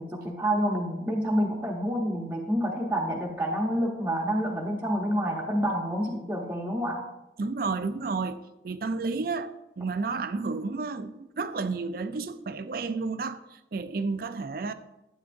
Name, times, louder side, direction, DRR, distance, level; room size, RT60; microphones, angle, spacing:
voice 1, 0.0-7.0, equal, 10° right, 0.9 m, -28 dB
voice 2, 7.4-8.4 8.6-13.4 13.7-14.7, right 4 dB, 50° right, 0.4 m, -31 dB
13.0 x 8.0 x 2.6 m
head